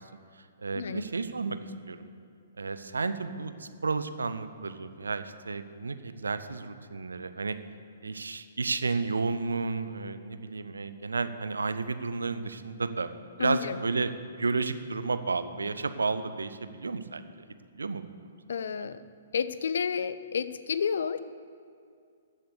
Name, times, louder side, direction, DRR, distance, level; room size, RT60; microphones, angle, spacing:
voice 1, 0.6-1.6 1.9-2.1 2.6-7.6 8.0-13.1 13.4-14.1 14.4-17.2 17.7-18.1 18.8-18.9, right 4 dB, 70° right, 11 dB, 0.7 m, -32 dB
voice 2, 13.4-13.8 18.5-19.0 19.3-21.2, left 7 dB, 60° left, 14 dB, 0.5 m, -30 dB
14.0 x 7.7 x 6.8 m, 2.3 s
figure-of-eight pair, 120°, 0 cm